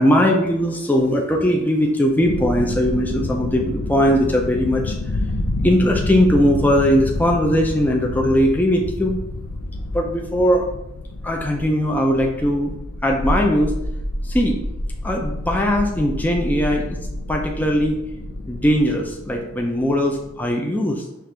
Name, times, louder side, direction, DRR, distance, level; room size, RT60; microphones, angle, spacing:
voice 1, 0.0-4.9 5.6-9.2 9.9-10.7 11.2-12.7 13.0-13.8 14.2-14.6 15.0-17.0 17.3-18.0 18.5-21.1, equal, 10° left, 0 dB, 0.4 m, -19 dB
sound 1, 2.2-20.5, left 1 dB, 80° left, 0.5 m, -29 dB
5.8 x 2.4 x 3.3 m, 0.85 s
head